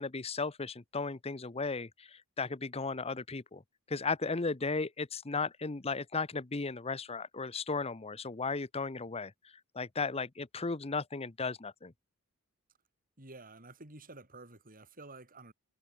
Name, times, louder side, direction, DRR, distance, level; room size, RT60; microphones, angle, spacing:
voice 1, 0.0-3.6 3.9-9.3 9.7-11.9, left 4 dB, 30° left, 0.8 m, -35 dB
voice 2, 13.2-15.5, right 2 dB, 40° right, 7.7 m, -51 dB
head